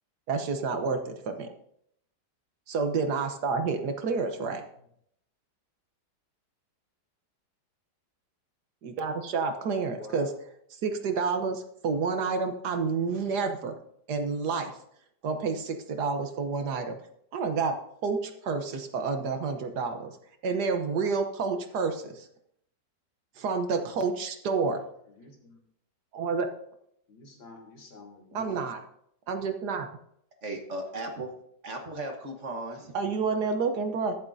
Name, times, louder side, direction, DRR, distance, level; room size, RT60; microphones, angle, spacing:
voice 1, 0.3-1.5 2.7-4.6 8.8-10.3 10.8-13.8 14.1-14.7 15.2-17.0 17.3-17.7 18.0-20.1 20.4-22.3 23.4-24.8 26.1-26.5 28.3-28.8 29.3-29.9 32.9-34.1, right 4 dB, 65° right, 6 dB, 1.4 m, -29 dB
voice 2, 9.9-10.3 25.1-25.6 27.1-28.6, left 3 dB, 85° left, 0 dB, 2.9 m, -48 dB
voice 3, 30.4-31.3 31.6-32.9, right 2 dB, 45° right, 3 dB, 1.5 m, -36 dB
21.5 x 7.3 x 2.6 m, 0.72 s
omnidirectional pair, 2.0 m